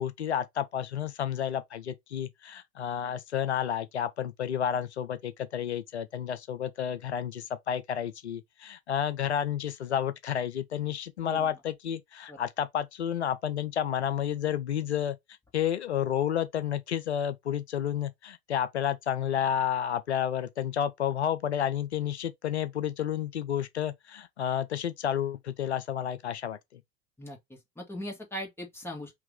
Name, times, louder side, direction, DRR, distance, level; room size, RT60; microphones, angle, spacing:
voice 1, 0.0-15.2 15.5-26.8, left 9 dB, 85° left, 0.5 m, -31 dB
voice 2, 27.2-29.1, equal, 5° left, 2.1 m, -39 dB
3.4 x 3.1 x 3.6 m
figure-of-eight pair, 75°, 32 cm